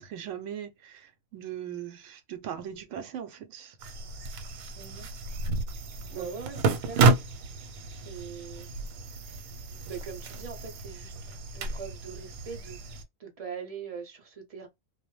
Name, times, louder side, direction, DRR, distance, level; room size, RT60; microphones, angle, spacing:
voice 1, 0.0-3.7 6.1-6.3, right 9 dB, 70° right, 0.9 m, -39 dB
sound 1, 3.8-13.0, right 3 dB, 90° right, 1.0 m, -30 dB
voice 2, 4.8-5.1 6.1-7.0 8.0-8.7 9.9-12.9 13.2-14.7, right 6 dB, 35° right, 0.6 m, -42 dB
2.2 x 2.0 x 2.9 m
omnidirectional pair, 1.4 m